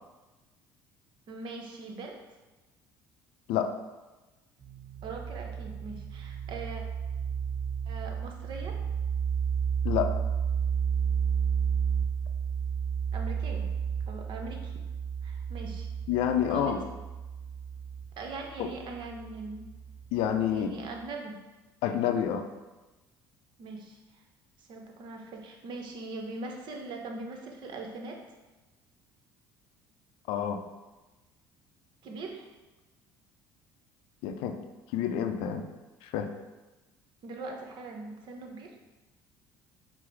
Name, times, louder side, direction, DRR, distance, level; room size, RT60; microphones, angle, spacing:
voice 1, 1.3-2.2 5.0-6.8 7.9-8.8 13.1-13.7 14.1-14.7 15.2-15.9 16.5-16.8 18.2-19.7 20.5-21.3 23.6-24.0 24.6-28.2 32.0-32.5 37.2-38.7, right 3 dB, 60° right, 2 dB, 0.8 m, -41 dB
sound 1, 4.6-20.0, right 7 dB, 30° right, 0.4 m, -32 dB
voice 2, 16.1-16.8 18.6-18.7 20.1-20.7 21.8-22.5 30.3-30.6 34.2-34.6 34.9-35.7 36.0-36.3, left 9 dB, 75° left, 6 dB, 0.4 m, -28 dB
4.8 x 2.0 x 4.6 m, 1.1 s
supercardioid pair, 80°, 9 cm